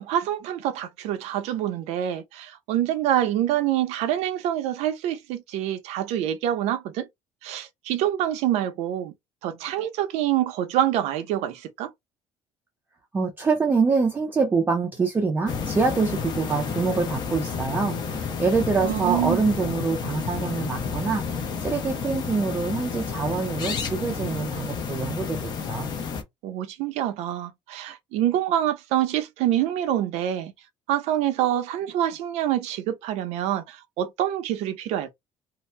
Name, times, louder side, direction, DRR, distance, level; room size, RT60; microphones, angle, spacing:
voice 1, 0.0-7.1 7.4-9.1 9.4-11.9 18.8-19.4 26.4-30.5 30.9-35.1, right 11 dB, 75° right, 0.6 m, -26 dB
voice 2, 13.1-25.9, right 4 dB, 15° right, 0.5 m, -25 dB
sound 1, 15.5-26.2, left 5 dB, 40° left, 0.7 m, -31 dB
2.7 x 2.1 x 3.2 m
cardioid pair, 165°, 11 cm